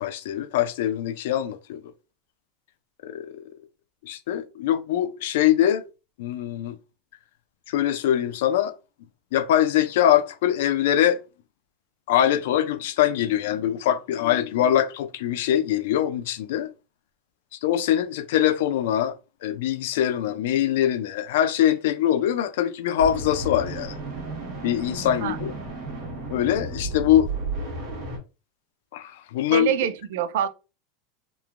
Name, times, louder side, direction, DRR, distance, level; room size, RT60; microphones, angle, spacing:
voice 1, 0.0-1.8 3.0-3.4 4.0-5.8 6.2-6.8 7.7-8.7 9.3-11.2 12.1-16.7 17.5-19.1 19.4-24.0 24.6-25.5 26.3-27.3 28.9-29.7, left 11 dB, 75° left, 0.3 m, -23 dB
sound 1, 23.0-28.2, right 2 dB, 45° right, 1.2 m, -33 dB
voice 2, 29.5-30.5, right 10 dB, 70° right, 0.3 m, -25 dB
3.0 x 2.1 x 2.4 m
supercardioid pair, 165°, 0 cm